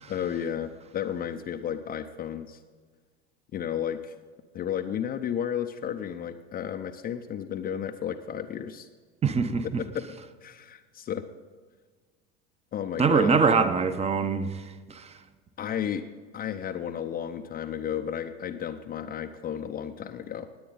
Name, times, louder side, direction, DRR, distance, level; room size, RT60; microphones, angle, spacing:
voice 1, 0.1-2.6 3.5-4.1 4.5-8.9 9.6-11.2 12.7-13.4 15.6-16.0 16.3-20.5, left 9 dB, 30° left, 0.7 m, -33 dB
voice 2, 9.2-9.8 13.0-14.5 14.9-15.1, right 5 dB, 20° right, 0.9 m, -23 dB
19.5 x 8.6 x 4.0 m
figure-of-eight pair, 80°, 32 cm